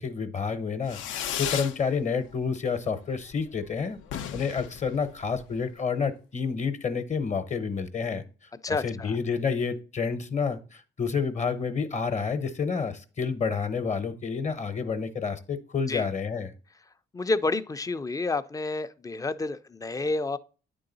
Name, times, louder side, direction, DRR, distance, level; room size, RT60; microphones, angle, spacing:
voice 1, 0.0-4.0 4.3-8.2 8.7-16.5, left 5 dB, 35° left, 0.8 m, -29 dB
Fireworks, 0.8-1.8 2.1-2.7 3.0-3.1 3.3-3.4 3.7-3.8 4.0-5.7, left 9 dB, 75° left, 0.5 m, -35 dB
voice 2, 8.6-9.2 15.9-16.1 17.1-20.4, left 3 dB, 15° left, 0.4 m, -29 dB
9.3 x 3.9 x 3.9 m
cardioid pair, 90°, 20 cm